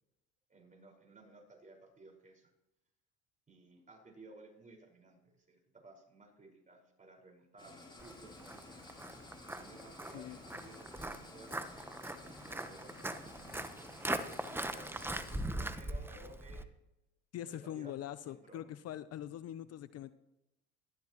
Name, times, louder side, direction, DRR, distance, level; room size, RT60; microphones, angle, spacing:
voice 1, 0.5-2.5 3.5-9.0 9.5-14.0 14.7-16.7 17.4-18.0 18.2-18.7, right 2 dB, 25° right, 1 dB, 5.0 m, -57 dB
sound 1, 7.6-15.4, left 2 dB, 15° left, 3.6 m, -54 dB
Walk footsteps, 8.0-16.6, right 1 dB, 5° right, 1.0 m, -41 dB
voice 2, 17.3-20.1, left 11 dB, 50° left, 14 dB, 0.7 m, -43 dB
18.0 x 13.0 x 3.0 m, 0.90 s
supercardioid pair, 85°, 32 cm